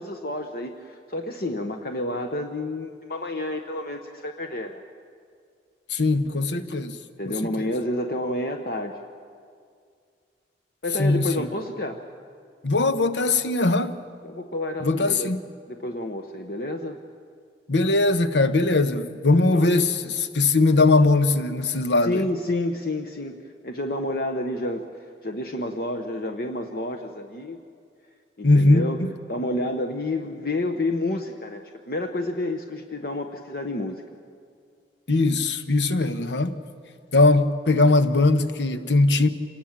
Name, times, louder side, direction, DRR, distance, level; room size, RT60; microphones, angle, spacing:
voice 1, 0.0-4.8 7.2-9.0 10.8-12.0 14.2-15.3 15.7-17.0 19.5-19.8 22.0-23.4 23.6-27.6 28.4-29.0 29.3-34.0, left 1 dB, 55° left, 1.0 m, -29 dB
voice 2, 5.9-7.0 7.3-7.7 11.0-11.5 12.6-14.0 14.8-15.4 17.7-22.2 28.4-29.1 35.1-36.5 37.1-39.3, left 2 dB, 85° left, 1.1 m, -20 dB
27.0 x 19.0 x 7.4 m
head